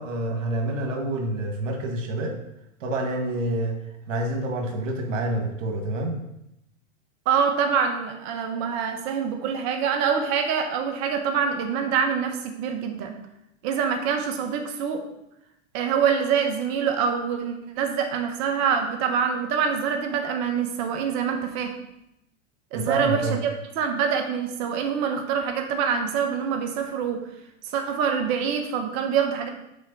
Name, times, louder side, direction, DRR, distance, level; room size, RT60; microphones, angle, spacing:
voice 1, 0.0-2.3 2.8-3.8 4.1-6.2 22.7-23.4, right 1 dB, 85° right, 2 dB, 1.7 m, -27 dB
voice 2, 7.3-13.1 13.6-15.0 15.7-21.7 22.7-23.4 23.8-27.2 27.7-29.5, right 7 dB, 45° right, 4 dB, 1.2 m, -25 dB
6.4 x 4.4 x 5.3 m, 0.84 s
hypercardioid pair, 115°, 37 cm